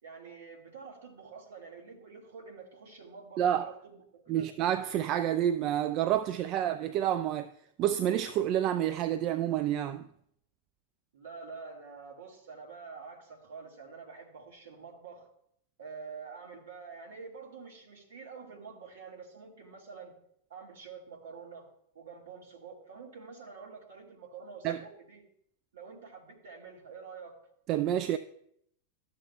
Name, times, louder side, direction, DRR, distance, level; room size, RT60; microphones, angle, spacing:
voice 1, 0.0-4.5 11.1-15.3 15.8-20.2 20.5-21.7 21.9-25.2 25.7-27.4, right 5 dB, 60° right, 1.7 m, -47 dB
voice 2, 3.4-3.7 4.3-7.5 7.8-10.0 24.6-24.8 27.7-28.2, right 11 dB, 40° right, 0.3 m, -29 dB
12.5 x 6.6 x 2.3 m
figure-of-eight pair, 90°, 0 cm